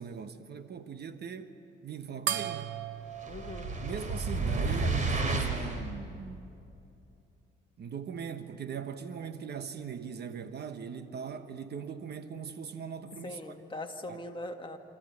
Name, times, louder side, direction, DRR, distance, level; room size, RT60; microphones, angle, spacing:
voice 1, 0.0-1.5 1.8-2.8 3.8-6.5 7.8-13.4 14.1-14.2, right 6 dB, 55° right, 1.2 m, -40 dB
sound 1, 2.3-5.1, right 10 dB, 70° right, 0.8 m, -38 dB
sound 2, 3.2-5.8, right 3 dB, 40° right, 3.3 m, -31 dB
voice 2, 3.3-3.7 13.2-14.8, left 2 dB, 25° left, 2.0 m, -41 dB
27.5 x 14.5 x 9.7 m
cardioid pair, 90°, 20 cm